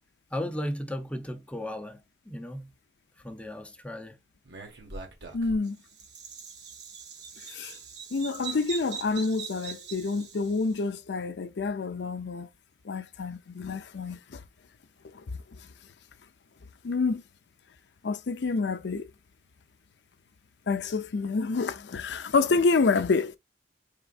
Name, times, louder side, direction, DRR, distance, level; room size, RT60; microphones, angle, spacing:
voice 1, 0.3-2.0 2.3-2.7 3.2-4.2, left 1 dB, 5° left, 0.6 m, -35 dB
Bird vocalization bird call bird song, 4.5-10.7, right 5 dB, 70° right, 1.3 m, -42 dB
voice 2, 5.3-5.8 7.5-7.7 8.1-12.5 12.8-14.4 15.1-15.2 16.8-17.2 18.0-19.1 20.7-23.4, left 4 dB, 70° left, 0.5 m, -28 dB
4.4 x 3.5 x 2.3 m
head